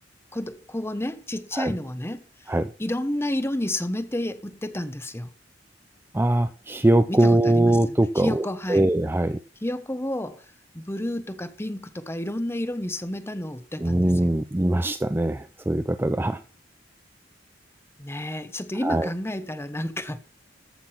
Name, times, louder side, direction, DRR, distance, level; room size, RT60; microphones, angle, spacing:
voice 1, 0.3-2.2 2.8-5.3 7.1-7.8 8.2-8.8 9.6-10.4 10.7-14.1 18.0-20.2, left 1 dB, 15° left, 1.0 m, -30 dB
voice 2, 6.1-9.4 13.8-16.4 18.8-19.1, right 1 dB, 10° right, 0.4 m, -22 dB
14.0 x 6.1 x 5.9 m
head